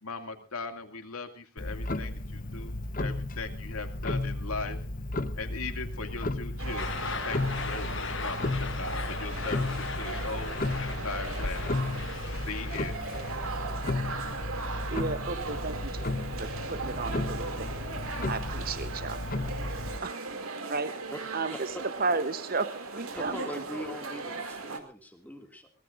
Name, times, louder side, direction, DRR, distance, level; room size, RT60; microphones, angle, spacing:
voice 1, 0.0-4.8 5.4-10.6 10.9-11.7 12.5-13.0, left 4 dB, 85° left, 6 dB, 2.3 m, -39 dB
Clock, 1.6-20.0, left 2 dB, 40° left, 0.9 m, -34 dB
sound 1, 6.6-24.8, right 3 dB, 75° right, 2.6 m, -38 dB
sound 2, 6.8-13.9, left 6 dB, 55° left, 1.2 m, -40 dB
voice 2, 14.9-17.7 18.2-19.2 20.0-20.3 20.7-20.9 21.3-22.7 22.9-23.6, right 3 dB, 45° right, 11 dB, 0.9 m, -33 dB
voice 3, 23.1-25.7, equal, 5° left, 4 dB, 2.3 m, -41 dB
23.5 x 18.5 x 2.6 m, 0.34 s
head